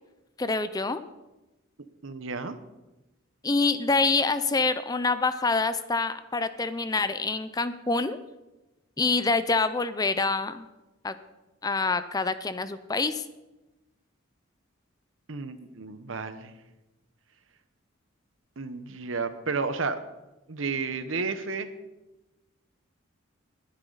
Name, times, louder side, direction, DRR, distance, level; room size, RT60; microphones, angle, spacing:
voice 1, 0.4-1.0 3.4-8.2 9.0-10.6 11.0-11.1 11.6-13.2, left 3 dB, 20° left, 12 dB, 0.5 m, -26 dB
voice 2, 2.0-2.6 15.3-16.5 18.6-20.0 20.5-21.7, right 4 dB, 70° right, 11 dB, 1.0 m, -32 dB
21.0 x 9.8 x 4.0 m, 1.0 s
head